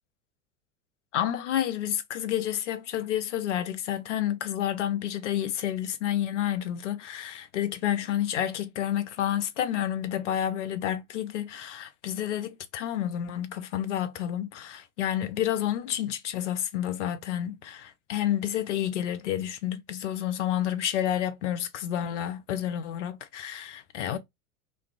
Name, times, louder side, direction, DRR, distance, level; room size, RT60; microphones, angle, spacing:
voice 1, 1.1-24.2, left 11 dB, 55° left, 0.5 m, -30 dB
2.4 x 2.2 x 2.3 m
figure-of-eight pair, 90°, 45 cm